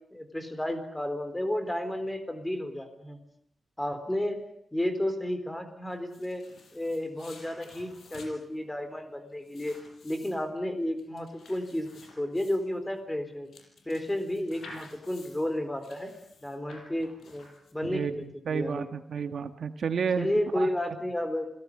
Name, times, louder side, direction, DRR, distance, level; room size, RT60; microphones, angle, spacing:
voice 1, 0.1-3.2 3.8-4.4 4.7-6.4 6.7-9.8 10.0-11.9 12.2-13.5 13.9-16.1 16.4-17.5 17.7-18.0 18.5-18.9 20.2-21.5, left 1 dB, 10° left, 9 dB, 4.1 m, -32 dB
sound 1, 5.9-18.0, left 3 dB, 75° left, 6.2 m, -52 dB
voice 2, 17.9-20.3 20.5-20.7, right 6 dB, 65° right, 9 dB, 1.5 m, -31 dB
28.5 x 18.0 x 9.8 m, 0.73 s
wide cardioid pair, 165°, 0 cm